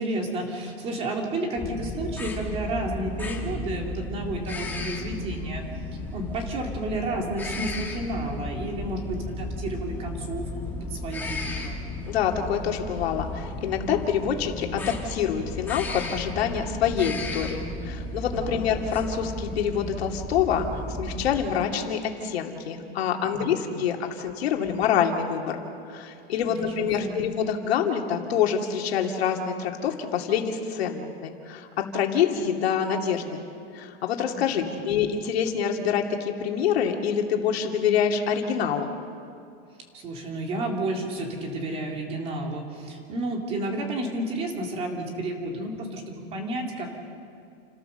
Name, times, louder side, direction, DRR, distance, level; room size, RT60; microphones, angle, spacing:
voice 1, 0.0-5.6 6.1-11.8 18.3-18.6 23.2-23.8 26.5-27.2 34.3-34.8 39.9-46.9, right 1 dB, 20° right, 1 dB, 2.6 m, -32 dB
sound 1, 1.6-21.5, left 2 dB, 5° left, 1.6 m, -34 dB
voice 2, 12.1-20.7 21.0-25.6 25.9-33.5 33.7-38.9, left 8 dB, 75° left, 2 dB, 2.6 m, -26 dB
30.0 x 13.0 x 6.8 m, 2.5 s
supercardioid pair, 175°, 31 cm